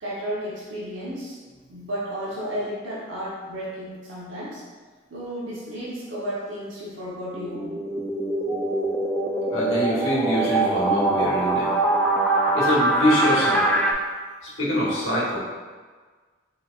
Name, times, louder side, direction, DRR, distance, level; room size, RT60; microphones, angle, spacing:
voice 1, 0.0-1.4 1.7-4.6 5.1-7.8 8.4-8.9, equal, 80° right, -8 dB, 0.9 m, -33 dB
sound 1, 7.3-13.9, right 2 dB, 5° left, 0.3 m, -23 dB
voice 2, 9.5-11.8 12.5-13.8 14.6-15.4, equal, 85° left, -6 dB, 1.2 m, -24 dB
4.1 x 3.9 x 2.4 m, 1.4 s
head